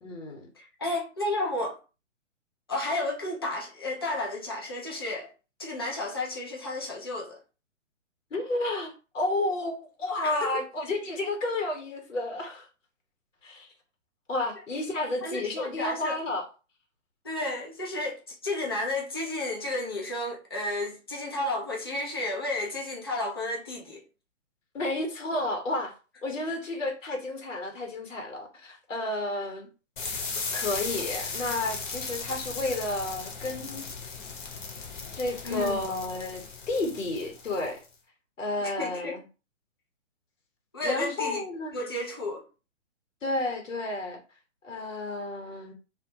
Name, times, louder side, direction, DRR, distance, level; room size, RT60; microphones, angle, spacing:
voice 1, 0.0-0.5 8.3-12.7 13.4-13.7 14.3-16.4 24.7-25.9 26.2-29.7 30.5-33.9 35.1-37.8 38.4-39.2 40.8-41.7 43.2-44.2 44.6-45.7, left 2 dB, 85° left, 0.9 m, -31 dB
voice 2, 0.6-1.8 2.7-5.3 5.6-7.4 10.2-10.5 15.2-16.2 17.2-24.0 35.4-35.9 38.6-39.2 40.7-41.4 41.7-42.4, left 2 dB, 20° left, 0.3 m, -32 dB
sound 1, 30.0-37.9, left 4 dB, 40° left, 0.8 m, -37 dB
2.2 x 2.1 x 2.7 m
figure-of-eight pair, 130°, 37 cm